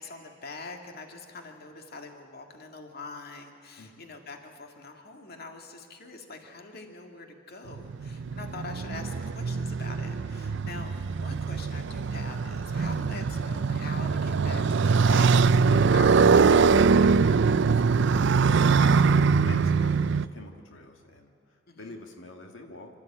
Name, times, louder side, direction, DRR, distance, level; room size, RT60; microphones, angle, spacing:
voice 1, 0.0-17.9 21.7-21.9, left 3 dB, 55° left, 4 dB, 2.1 m, -44 dB
voice 2, 3.8-4.1 18.3-23.0, left 2 dB, 90° left, 3 dB, 1.7 m, -45 dB
Motorcycle, 7.7-20.3, right 5 dB, 65° right, 0.5 m, -23 dB
28.0 x 13.0 x 8.7 m, 2.6 s
head